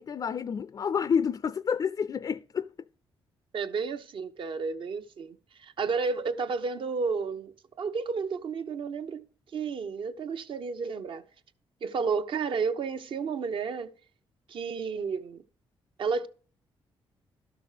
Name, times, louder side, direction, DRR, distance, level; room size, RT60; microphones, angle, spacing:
voice 1, 0.0-2.7, left 7 dB, 45° left, 0.4 m, -29 dB
voice 2, 3.5-9.3 9.5-11.2 11.8-13.9 14.5-15.4 16.0-16.3, right 5 dB, 65° right, 0.9 m, -32 dB
12.5 x 6.1 x 4.9 m
cardioid pair, 75°, 9 cm